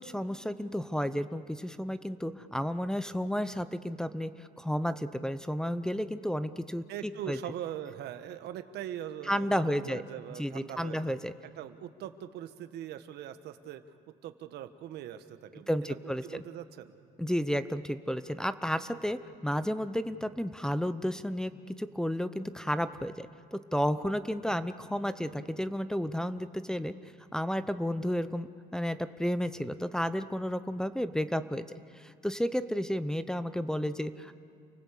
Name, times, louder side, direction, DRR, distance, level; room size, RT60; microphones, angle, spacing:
voice 1, 0.0-4.3 4.6-7.4 9.3-10.0 10.4-11.3 15.7-16.4 17.2-26.9 27.3-31.7 32.0-34.4, equal, 5° left, 12 dB, 0.8 m, -32 dB
voice 2, 6.9-11.2 11.6-13.8 14.2-17.0, right 11 dB, 80° right, 10 dB, 1.4 m, -41 dB
29.0 x 19.5 x 8.5 m, 2.4 s
cardioid pair, 110°, 17 cm